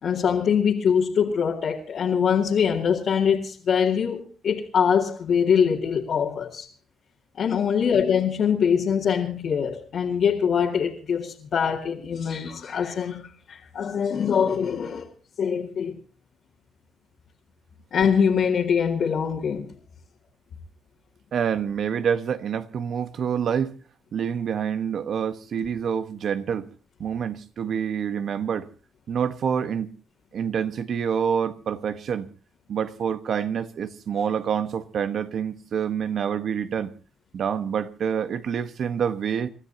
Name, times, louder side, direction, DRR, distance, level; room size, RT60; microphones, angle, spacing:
voice 1, 0.0-6.7 7.4-15.1 15.4-16.0 17.9-19.7, left 7 dB, 60° left, 2.3 m, -23 dB
voice 2, 21.3-23.7 24.1-26.7 27.0-28.7 29.1-29.9 30.3-32.3 32.7-36.9 37.3-39.5, right 7 dB, 60° right, 1.2 m, -27 dB
29.5 x 13.5 x 2.8 m
cardioid pair, 90°, 0 cm